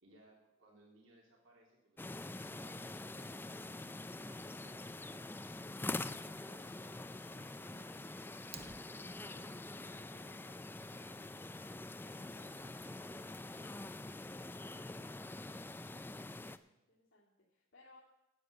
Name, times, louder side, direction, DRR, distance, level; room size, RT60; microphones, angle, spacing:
voice 1, 0.0-3.8 4.2-8.2 8.8-11.7 12.0-13.8, right 1 dB, 75° right, -1 dB, 3.3 m, -65 dB
sound 1, 2.0-16.6, left 2 dB, 10° left, 0.3 m, -45 dB
Fire, 8.4-9.4, right 5 dB, 30° right, 0.8 m, -54 dB
voice 2, 16.4-18.0, left 3 dB, 75° left, -7 dB, 2.4 m, -64 dB
9.9 x 8.5 x 7.9 m, 0.95 s
head